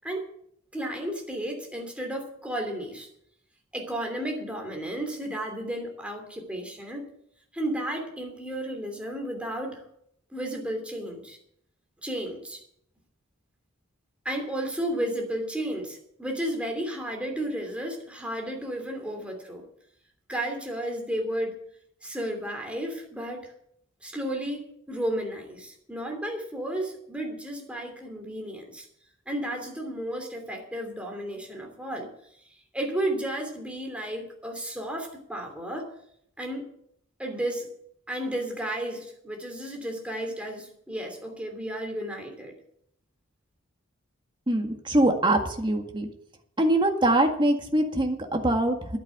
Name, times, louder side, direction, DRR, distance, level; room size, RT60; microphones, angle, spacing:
voice 1, 0.7-3.1 3.7-7.0 7.5-9.8 10.3-11.4 12.0-12.6 14.2-19.7 20.3-21.6 22.0-23.5 24.0-28.9 29.3-32.1 32.7-35.9 36.4-36.6 37.2-37.7 38.1-42.5, right 1 dB, 5° right, 2 dB, 3.0 m, -33 dB
voice 2, 44.5-46.1 46.6-49.0, right 1 dB, 25° right, 3 dB, 1.8 m, -23 dB
11.0 x 9.2 x 8.4 m, 0.71 s
head